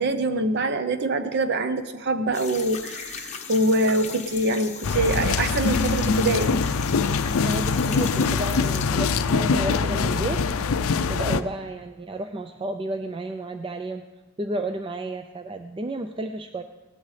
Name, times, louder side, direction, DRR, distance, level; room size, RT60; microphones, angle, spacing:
voice 1, 0.0-6.6, right 2 dB, 50° right, 10 dB, 0.7 m, -24 dB
sound 1, 2.3-9.8 10.1-11.0, left 6 dB, 30° left, 1.0 m, -38 dB
sound 2, 4.8-11.4, left 4 dB, 65° left, 0.5 m, -23 dB
voice 2, 7.4-10.4 11.1-14.0 14.4-16.6, right 2 dB, 20° right, 7 dB, 0.3 m, -32 dB
18.0 x 12.0 x 3.2 m, 1.2 s
head